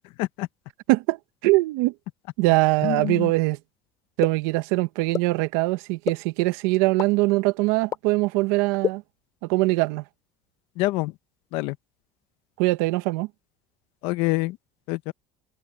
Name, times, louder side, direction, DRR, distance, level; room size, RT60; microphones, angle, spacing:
voice 1, 1.4-1.9 2.4-3.6 4.2-9.0 9.5-10.0 12.6-13.3, right 21 dB, 85° right, 1.3 m, -22 dB
voice 2, 2.8-3.3 10.8-11.1 11.5-11.8 14.0-14.6 14.9-15.1, left 20 dB, 65° left, 0.9 m, -26 dB
sound 1, 4.2-4.3 5.1-5.2 6.1-6.2 7.0-7.1 7.9-8.0 8.8-8.9, left 9 dB, 30° left, 3.0 m, -24 dB
cardioid pair, 165°, 10 cm